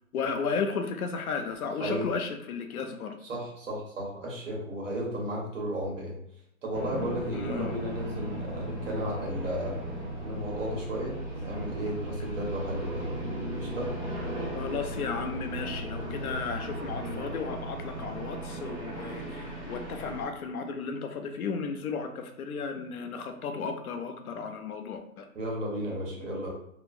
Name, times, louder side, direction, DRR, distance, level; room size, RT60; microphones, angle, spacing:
voice 1, 0.1-3.2 7.3-7.8 14.5-25.3, left 5 dB, 90° left, 6 dB, 0.6 m, -34 dB
voice 2, 3.2-6.2 6.6-9.8 10.2-13.1 13.6-13.9 25.3-26.5, equal, 60° right, -3 dB, 1.3 m, -34 dB
sound 1, 6.7-20.3, right 1 dB, 20° right, 0.8 m, -36 dB
2.9 x 2.1 x 2.5 m, 0.75 s
hypercardioid pair, 165°, 42 cm